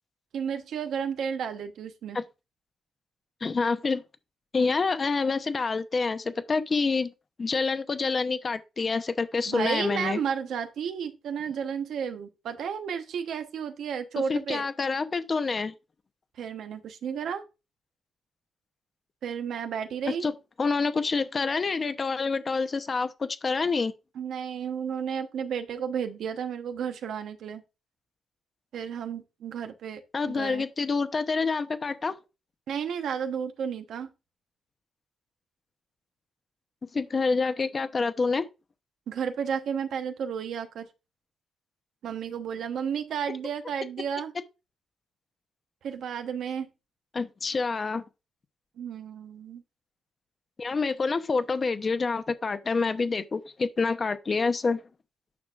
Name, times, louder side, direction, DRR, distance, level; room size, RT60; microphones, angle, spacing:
voice 1, 0.3-2.2 9.5-14.7 16.4-17.4 19.2-20.3 24.1-27.6 28.7-30.0 30.3-30.7 32.7-34.1 39.1-40.9 42.0-44.3 45.8-46.7 48.8-49.6, right 7 dB, 80° right, 1.0 m, -32 dB
voice 2, 3.4-4.0 4.5-7.1 7.4-10.2 14.3-15.7 20.2-20.3 20.6-23.9 30.1-32.1 36.9-38.5 47.1-48.0 50.6-54.8, left 4 dB, 30° left, 0.8 m, -27 dB
9.4 x 6.1 x 2.5 m
cardioid pair, 135°, 0 cm